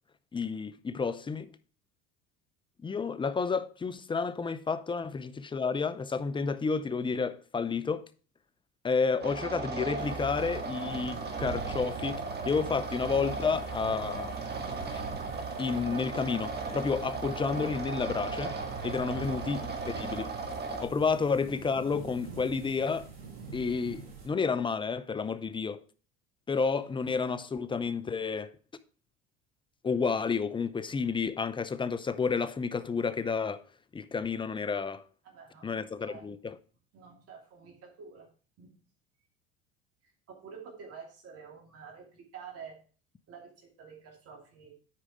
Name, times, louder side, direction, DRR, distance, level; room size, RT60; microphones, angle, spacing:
voice 1, 0.3-1.5 2.8-8.1 8.8-14.3 14.9-15.0 15.6-18.6 18.8-20.3 20.8-23.1 23.5-25.8 26.5-28.5 29.8-33.6 33.9-35.0 35.6-36.6, left 5 dB, 15° left, 0.6 m, -31 dB
sound 1, 9.2-20.8, right 3 dB, 35° right, 1.8 m, -37 dB
sound 2, 9.9-24.3, right 6 dB, 85° right, 2.7 m, -44 dB
voice 2, 18.9-19.3 35.2-36.2 36.9-38.3 38.6-38.7 40.3-42.8 43.3-44.7, right 6 dB, 50° right, 2.6 m, -49 dB
8.7 x 4.9 x 4.7 m
hypercardioid pair, 85°, 30 cm